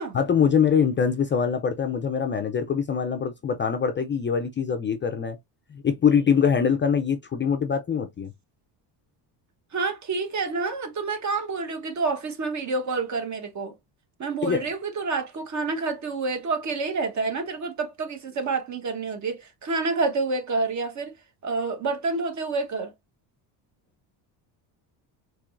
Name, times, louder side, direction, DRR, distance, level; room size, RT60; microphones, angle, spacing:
voice 1, 0.1-5.4 5.7-8.3 14.4-14.7, left 7 dB, 25° left, 0.5 m, -23 dB
voice 2, 9.7-13.7 14.2-21.1 21.4-22.9, right 3 dB, 40° right, 1.2 m, -28 dB
4.4 x 3.0 x 2.5 m
cardioid pair, 120°, 44 cm